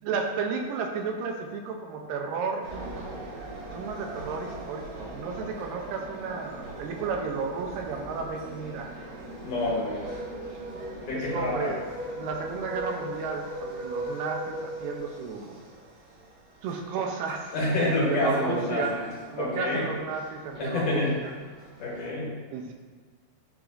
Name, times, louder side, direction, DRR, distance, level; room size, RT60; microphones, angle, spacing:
voice 1, 0.0-2.7 3.7-8.9 11.1-11.9 12.2-15.6 16.6-17.5 17.8-19.0 19.3-21.3 22.5-22.7, right 5 dB, 80° right, 2 dB, 2.2 m, -33 dB
sound 1, 2.6-22.1, right 1 dB, 60° right, 2.2 m, -40 dB
voice 2, 9.4-10.1 11.0-11.7 17.5-19.1 19.4-19.9 20.6-21.2 21.8-22.4, left 2 dB, 70° left, -6 dB, 2.6 m, -28 dB
9.7 x 4.0 x 2.5 m, 1.5 s
omnidirectional pair, 4.1 m